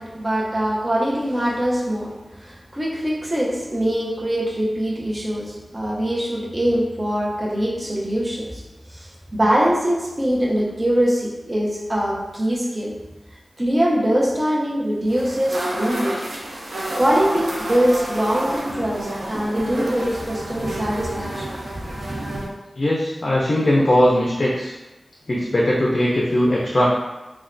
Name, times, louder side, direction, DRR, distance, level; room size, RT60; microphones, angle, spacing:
voice 1, 0.0-8.6 8.9-13.0 13.6-16.2 17.0-21.6, equal, 30° right, -4 dB, 0.6 m, -23 dB
sound 1, 15.1-22.5, right 1 dB, 75° right, 0.5 m, -29 dB
voice 2, 22.8-24.7 25.3-26.9, left 1 dB, 50° left, -4 dB, 0.4 m, -19 dB
3.1 x 2.2 x 2.5 m, 1.0 s
wide cardioid pair, 80°, 0 cm